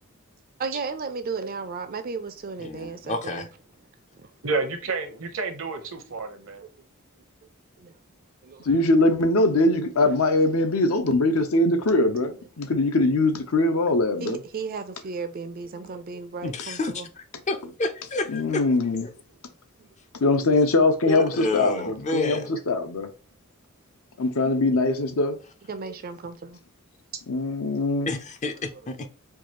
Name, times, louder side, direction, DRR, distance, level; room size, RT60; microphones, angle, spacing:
voice 1, 0.6-3.5 6.1-6.2 6.6-6.7 7.8-8.0 8.4-8.7 9.8-9.9 14.2-17.1 19.8-19.9 25.7-26.6 28.7-28.8, right 4 dB, 45° right, 0.5 m, -34 dB
voice 2, 2.6-3.5 16.4-18.6 19.0-19.1 21.0-22.6 24.4-24.6 28.1-29.1, left 2 dB, 35° left, 0.5 m, -30 dB
voice 3, 4.4-6.6, right 3 dB, 65° right, 0.8 m, -30 dB
voice 4, 8.6-14.4 18.3-19.1 20.2-23.1 24.2-25.4 27.3-28.2, left 2 dB, 70° left, 0.7 m, -22 dB
4.6 x 2.4 x 2.9 m
head